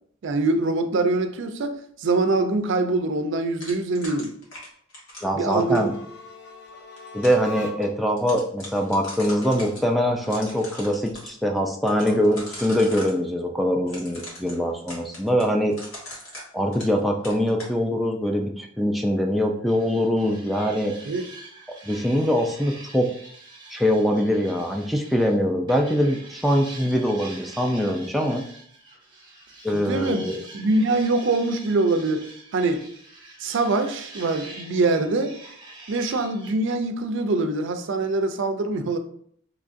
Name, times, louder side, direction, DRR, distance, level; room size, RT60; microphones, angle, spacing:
voice 1, 0.2-4.3 5.3-5.9 21.1-21.2 29.7-32.9 33.4-35.4 35.9-39.0, right 2 dB, 65° right, 0.4 m, -24 dB
sound 1, 3.6-6.0 6.7-7.5 7.8-7.9 8.2-9.8 10.2-11.3 11.9-13.2 13.9-17.0 17.2-17.7, equal, 90° left, 1.4 m, -40 dB
voice 2, 5.2-6.0 7.1-15.8 16.5-20.9 21.8-23.1 23.7-28.4 29.6-30.4, equal, ahead, 0.3 m, -23 dB
sound 2, 5.4-8.1, left 2 dB, 60° left, 0.5 m, -41 dB
sound 3, 19.7-25.4 25.7-36.5, right 2 dB, 25° right, 0.9 m, -45 dB
3.7 x 3.0 x 2.5 m
head